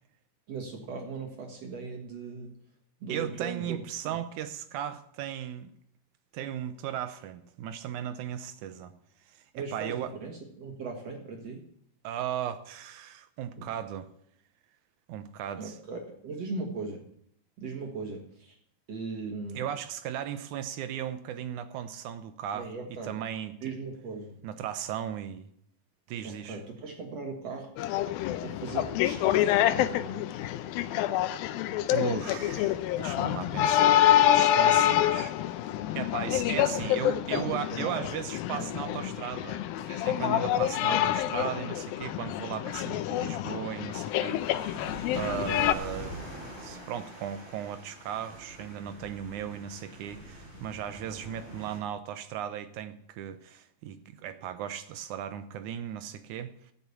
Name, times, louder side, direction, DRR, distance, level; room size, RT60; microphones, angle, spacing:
voice 1, 0.5-2.5 3.0-3.8 4.0-4.2 9.6-11.6 13.6-13.7 15.6-17.0 17.6-18.6 18.9-19.6 22.5-23.1 23.6-24.4 26.2-27.8 28.4-30.3 36.4-36.8 37.3-38.2 38.5-39.2, right 4 dB, 55° right, 2 dB, 2.3 m, -39 dB
voice 2, 3.1-5.7 6.3-8.9 9.3-10.1 12.0-14.1 15.1-15.7 19.6-22.7 23.0-23.5 24.4-25.5 26.1-26.6 31.9-35.3 36.0-44.9 45.1-46.2 46.6-56.7, right 10 dB, 80° right, 10 dB, 1.7 m, -36 dB
sound 1, 27.8-45.7, left 12 dB, 85° left, 2.4 m, -27 dB
sound 2, 44.1-51.8, equal, 30° left, 4.2 m, -44 dB
14.5 x 6.9 x 8.4 m, 0.68 s
omnidirectional pair, 4.3 m